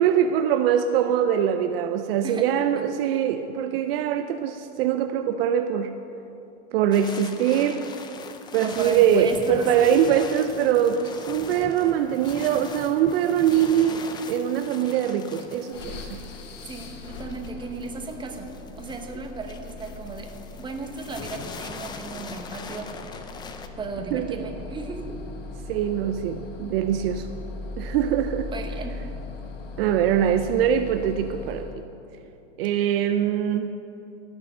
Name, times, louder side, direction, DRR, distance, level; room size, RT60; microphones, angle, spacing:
voice 1, 0.0-5.9 6.7-7.8 8.5-16.2 24.1-24.4 25.7-27.3 27.8-28.5 29.8-31.7 32.6-33.7, right 9 dB, 50° right, 9 dB, 0.6 m, -23 dB
sound 1, 6.9-23.7, left 5 dB, 10° left, 0.4 m, -41 dB
voice 2, 8.6-10.0 16.6-18.5 18.8-20.3 20.6-22.9 23.8-25.2 28.5-29.0, right 4 dB, 10° right, 4 dB, 1.1 m, -35 dB
sound 2, 15.7-31.9, left 3 dB, 90° left, 1.6 m, -39 dB
17.0 x 7.1 x 6.6 m, 2.9 s
supercardioid pair, 135°, 37 cm